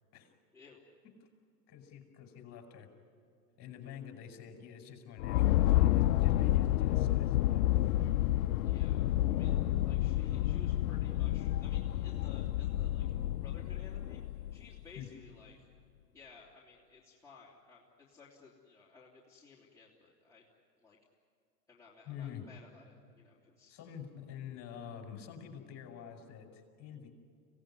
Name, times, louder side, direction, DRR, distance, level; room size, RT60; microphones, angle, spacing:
voice 1, 0.5-0.8 8.6-13.1 13.4-15.7 16.1-20.4 20.8-21.0 21.7-23.8, left 4 dB, 5° left, -7 dB, 3.4 m, -57 dB
voice 2, 1.7-2.9 3.6-8.2 15.0-15.1 22.1-22.5 23.7-27.1, left 8 dB, 30° left, 4 dB, 5.1 m, -48 dB
sound 1, 5.2-14.8, left 14 dB, 55° left, 0.7 m, -29 dB
26.0 x 17.5 x 9.8 m, 2.3 s
hypercardioid pair, 115°, 50 cm